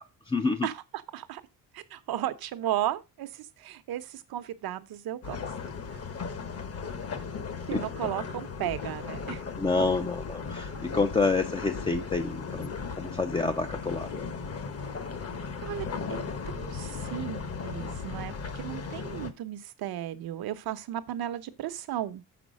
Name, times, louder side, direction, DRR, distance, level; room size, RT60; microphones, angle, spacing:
voice 1, 0.0-0.7 9.6-12.7 13.0-14.1, left 3 dB, 15° left, 0.4 m, -28 dB
voice 2, 0.6-1.4 1.7-5.4 5.9-6.0 7.7-9.4 15.6-22.2, right 12 dB, 75° right, 0.9 m, -35 dB
sound 1, 5.2-19.3, left 5 dB, 40° left, 1.0 m, -36 dB
7.0 x 6.0 x 5.2 m
cardioid pair, 165°, 37 cm